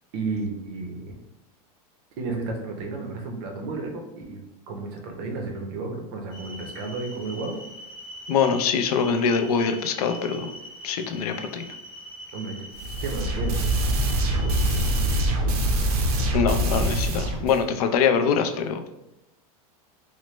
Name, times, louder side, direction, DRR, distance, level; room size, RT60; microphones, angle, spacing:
voice 1, 0.1-1.1 2.2-7.6 12.3-12.7 13.0-13.7, right 3 dB, 40° right, 2 dB, 0.5 m, -32 dB
sound 1, 6.3-15.3, equal, 25° left, 0.7 m, -42 dB
voice 2, 8.3-10.5 10.8-11.6 16.3-18.8, left 6 dB, 85° left, 7 dB, 0.4 m, -23 dB
sound 2, 12.7-17.6, right 1 dB, 80° right, 0.6 m, -24 dB
3.1 x 2.1 x 3.0 m, 0.92 s
supercardioid pair, 180°, 19 cm